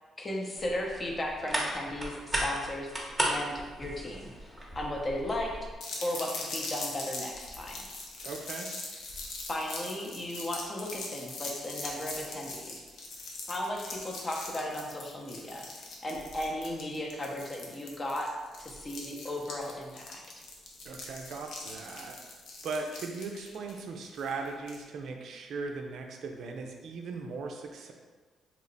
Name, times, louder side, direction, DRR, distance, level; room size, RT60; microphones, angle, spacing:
voice 1, 0.2-2.9 3.2-5.5 6.0-7.8 9.3-12.7 13.5-18.3 18.6-20.2, left 1 dB, 30° left, 0 dB, 0.6 m, -36 dB
sound 1, 0.6-5.8, right 1 dB, 15° right, 0.7 m, -35 dB
sound 2, 5.8-24.8, left 2 dB, 75° left, 0.6 m, -42 dB
voice 2, 8.2-8.7 20.9-22.2 22.6-27.9, right 4 dB, 70° right, 3 dB, 0.4 m, -38 dB
2.8 x 2.1 x 3.9 m, 1.4 s
cardioid pair, 90°, 0 cm